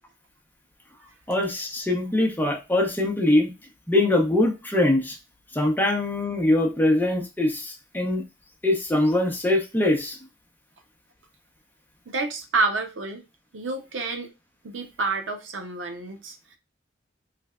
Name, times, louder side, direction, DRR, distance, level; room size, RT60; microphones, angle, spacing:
voice 1, 1.3-3.5 3.9-5.2 5.5-8.2 8.6-10.2, left 1 dB, 10° left, 0.7 m, -22 dB
voice 2, 12.1-13.2 13.5-14.3 14.6-16.4, right 3 dB, 85° right, 0.7 m, -28 dB
3.3 x 3.1 x 2.3 m
head